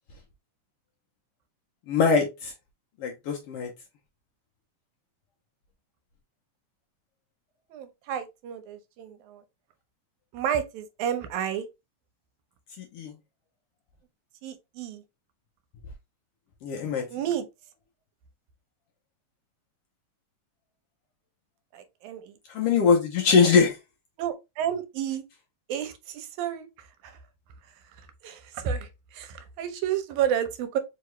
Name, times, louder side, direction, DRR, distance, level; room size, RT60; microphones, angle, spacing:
voice 1, 1.9-2.5 3.0-3.7 12.8-13.1 16.6-17.1 22.5-23.8, left 5 dB, 70° left, 1.4 m, -22 dB
voice 2, 7.7-9.4 10.3-11.7 14.4-15.0 17.1-17.5 21.7-22.3 24.2-25.2 25.7-27.2 28.2-30.8, right 9 dB, 85° right, 2.1 m, -31 dB
4.7 x 2.9 x 3.1 m
omnidirectional pair, 3.3 m